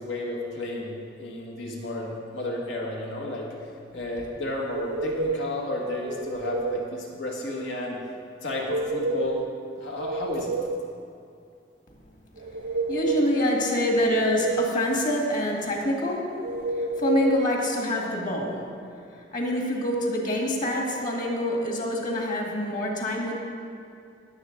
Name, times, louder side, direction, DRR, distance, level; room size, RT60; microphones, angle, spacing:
voice 1, 0.0-3.5 3.9-8.0 8.4-9.4 9.8-10.5, left 1 dB, 85° left, -2 dB, 1.9 m, -32 dB
sound 1, 4.7-5.6 6.0-6.9 8.5-9.5 9.8-10.9 12.4-13.4 13.8-14.8 16.4-17.5, right 3 dB, 65° right, 0.5 m, -29 dB
voice 2, 12.9-18.7 19.1-23.4, left 1 dB, 45° left, -1 dB, 1.9 m, -26 dB
17.5 x 7.3 x 3.9 m, 2.5 s
head